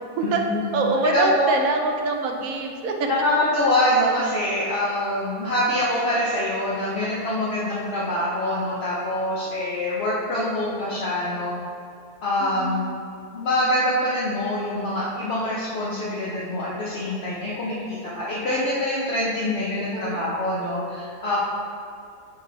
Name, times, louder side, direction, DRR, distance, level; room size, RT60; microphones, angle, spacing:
voice 1, 0.2-0.7 1.0-1.5 3.1-11.5 12.2-12.8 13.3-21.4, left 1 dB, 50° left, -7 dB, 0.9 m, -25 dB
voice 2, 0.7-3.1 12.4-12.9 19.9-20.2, right 3 dB, 70° right, 2 dB, 1.0 m, -24 dB
8.3 x 3.0 x 3.9 m, 2.5 s
omnidirectional pair, 1.7 m